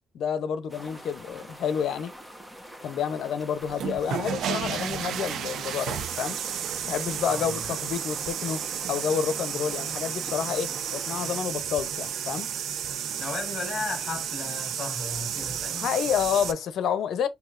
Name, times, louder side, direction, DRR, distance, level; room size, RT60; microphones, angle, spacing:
voice 1, 0.1-2.1 2.8-6.4 6.8-12.5 15.5-17.3, left 8 dB, 75° left, 0.7 m, -29 dB
sound 1, 0.7-11.4, equal, 10° right, 1.2 m, -45 dB
sound 2, 3.6-16.5, right 9 dB, 75° right, 0.6 m, -32 dB
voice 2, 7.2-7.7 13.1-15.9, left 3 dB, 45° left, 1.7 m, -35 dB
6.1 x 2.8 x 2.6 m
cardioid pair, 90°, 0 cm